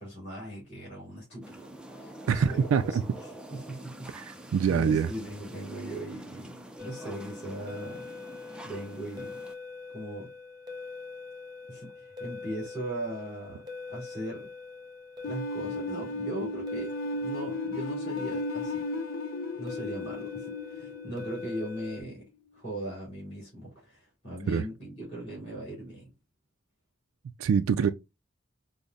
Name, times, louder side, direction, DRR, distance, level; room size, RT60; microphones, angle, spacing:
voice 1, 0.0-3.0 3.5-4.1 4.4-6.5 6.8-8.1 8.6-9.4 9.9-10.3 11.7-13.6 13.9-14.5 15.2-16.9 17.2-18.8 19.6-22.2 22.5-26.1, right 1 dB, 30° left, 2.3 m, -39 dB
sound 1, 1.4-9.6, right 1 dB, 5° right, 0.4 m, -46 dB
voice 2, 2.3-3.0 4.1-5.1 24.5-24.6 27.4-27.9, right 6 dB, 85° right, 0.3 m, -25 dB
sound 2, 6.8-22.0, left 4 dB, 20° right, 0.8 m, -43 dB
sound 3, 15.2-22.1, left 2 dB, 75° left, 0.4 m, -35 dB
5.2 x 2.1 x 2.3 m
head